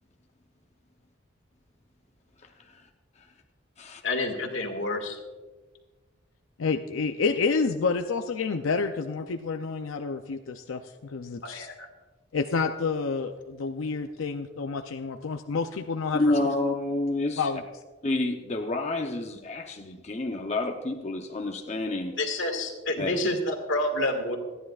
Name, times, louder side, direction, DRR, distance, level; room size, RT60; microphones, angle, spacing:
voice 1, 4.0-5.2 11.4-11.9 22.2-24.4, left 1 dB, 70° left, 4 dB, 1.9 m, -28 dB
voice 2, 6.6-11.7 12.3-16.3 17.4-17.6, left 4 dB, 90° left, 6 dB, 0.5 m, -29 dB
voice 3, 16.1-17.4 18.0-22.1 23.0-23.1, left 2 dB, 35° left, 2 dB, 0.7 m, -29 dB
26.5 x 10.0 x 2.4 m, 1.3 s
head